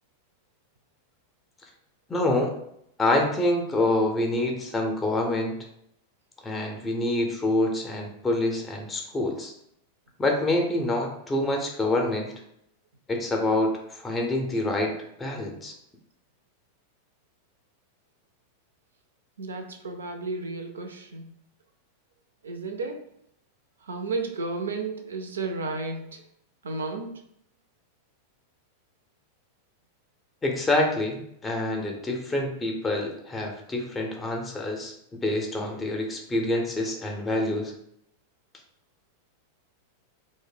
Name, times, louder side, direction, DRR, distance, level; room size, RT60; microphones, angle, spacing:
voice 1, 2.1-2.5 3.0-5.6 6.4-9.5 10.2-12.3 13.1-15.7 30.4-37.7, left 2 dB, 15° left, 1 dB, 0.5 m, -26 dB
voice 2, 19.4-21.3 22.4-23.0 23.9-26.2 26.6-27.2, right 3 dB, 70° right, 5 dB, 0.4 m, -33 dB
2.6 x 2.1 x 3.8 m, 0.73 s
figure-of-eight pair, 90°, 0 cm